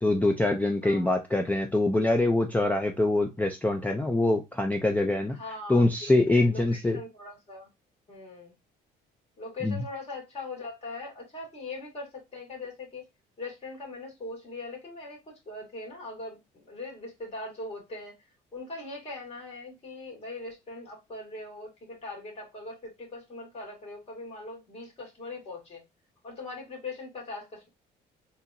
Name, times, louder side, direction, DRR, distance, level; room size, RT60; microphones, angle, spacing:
voice 1, 0.0-5.4 5.7-7.0 9.6-9.8, left 2 dB, 10° left, 0.4 m, -24 dB
voice 2, 5.4-7.7 8.1-8.5 9.4-13.0 13.4-18.2 18.5-25.8 26.2-27.7, left 2 dB, 35° left, 2.3 m, -41 dB
4.0 x 2.8 x 2.6 m
cardioid pair, 110°, 17 cm